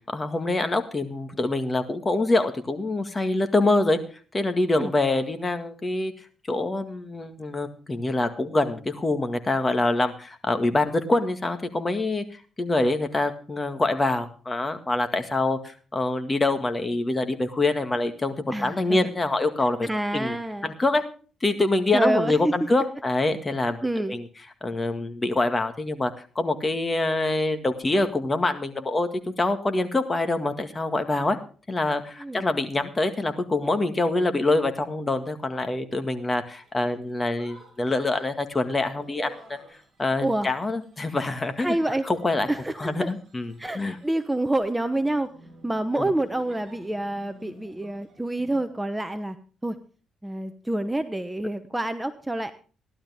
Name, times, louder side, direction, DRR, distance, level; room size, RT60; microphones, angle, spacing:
voice 1, 0.1-4.0 4.3-6.1 6.5-12.2 12.6-20.3 20.6-21.0 21.4-23.8 24.1-24.2 24.6-31.4 31.7-39.6 40.0-41.8 42.1-42.5 42.8-44.0 46.0-46.1, left 2 dB, 25° left, 8 dB, 1.8 m, -25 dB
voice 2, 18.5-19.1 19.8-20.7 21.9-22.6 23.8-24.2 32.2-32.5 40.2-40.5 41.6-42.1 42.5-43.1 43.6-45.3 45.6-49.4 49.6-49.8 50.2-52.5, right 1 dB, 10° right, 10 dB, 0.9 m, -27 dB
sound 1, 36.6-48.7, right 2 dB, 40° right, 6.9 m, -50 dB
16.0 x 12.0 x 3.5 m, 0.39 s
cardioid pair, 90°, 0 cm